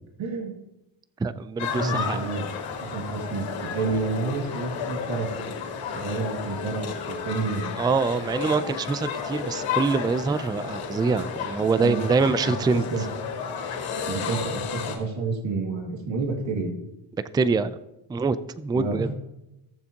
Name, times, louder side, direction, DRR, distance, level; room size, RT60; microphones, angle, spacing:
voice 1, 0.2-0.5 1.7-2.5 2.8-5.5 5.9-7.8 11.7-12.0 12.4-13.0 14.1-16.7 18.7-19.1, right 4 dB, 65° right, 1 dB, 2.3 m, -29 dB
voice 2, 1.2-2.3 7.8-12.8 17.3-17.8 18.1-19.1, right 4 dB, 10° right, 15 dB, 0.3 m, -25 dB
sound 1, 1.6-15.0, left 6 dB, 75° left, 3.2 m, -32 dB
18.0 x 7.0 x 2.9 m, 0.91 s
cardioid pair, 95°, 49 cm